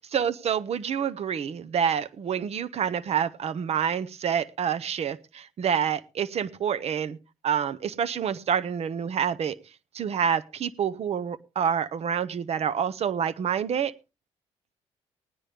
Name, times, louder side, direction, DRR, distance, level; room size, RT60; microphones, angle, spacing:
voice 1, 0.1-7.2 7.4-9.6 9.9-13.9, right 8 dB, 60° right, 0.8 m, -27 dB
18.5 x 9.9 x 3.4 m
cardioid pair, 70°, 12 cm